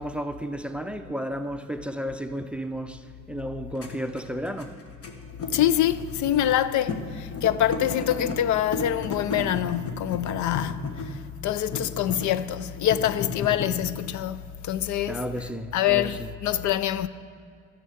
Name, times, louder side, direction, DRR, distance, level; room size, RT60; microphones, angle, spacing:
voice 1, 0.0-4.7 15.1-16.3, equal, 5° right, 0.5 m, -33 dB
sound 1, 0.9-1.0 2.0-2.1 3.4-3.5 3.7-6.6 6.9-7.0 7.3-8.4 8.7-11.2 11.7-12.4 12.8-13.7, left 4 dB, 50° left, 1.3 m, -33 dB
voice 2, 5.5-14.4 14.6-15.2 15.7-17.1, left 11 dB, 70° left, 0.5 m, -25 dB
11.0 x 6.5 x 6.9 m
cardioid pair, 90°, 30 cm